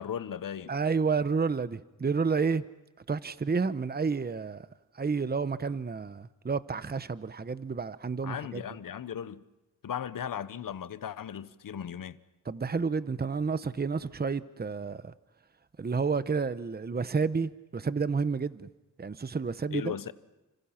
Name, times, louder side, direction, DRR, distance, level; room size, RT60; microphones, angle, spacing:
voice 1, 0.0-0.7 8.2-9.4 9.8-12.2 19.7-20.1, left 9 dB, 80° left, 1.0 m, -37 dB
voice 2, 0.7-2.6 3.1-4.6 5.0-8.6 12.5-15.1 15.8-18.7 19.0-20.0, right 5 dB, 30° right, 0.9 m, -30 dB
30.0 x 26.0 x 5.8 m
cardioid pair, 70°, 33 cm